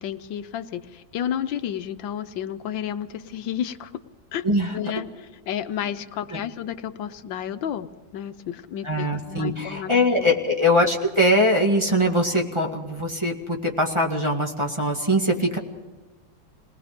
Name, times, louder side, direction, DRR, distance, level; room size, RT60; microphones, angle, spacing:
voice 1, 0.0-3.9 4.3-4.4 4.7-9.9 10.2-10.4, left 9 dB, 85° left, 10 dB, 1.6 m, -31 dB
voice 2, 8.8-15.6, left 1 dB, 15° right, 1 dB, 2.1 m, -22 dB
28.5 x 19.5 x 5.1 m, 1.2 s
omnidirectional pair, 2.0 m